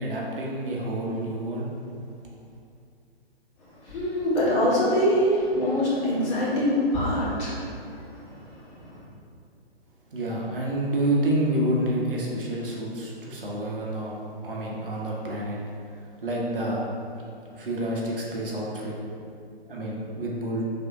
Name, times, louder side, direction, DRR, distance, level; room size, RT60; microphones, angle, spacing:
voice 1, 0.0-1.7 10.1-14.2 14.4-15.6 15.9-16.8 17.5-18.9 19.7-20.6, right 1 dB, 60° right, -3 dB, 0.9 m, -28 dB
voice 2, 3.8-8.4 8.8-8.9, equal, 30° left, -8 dB, 1.2 m, -24 dB
5.1 x 3.4 x 2.6 m, 2.5 s
figure-of-eight pair, 125°, 31 cm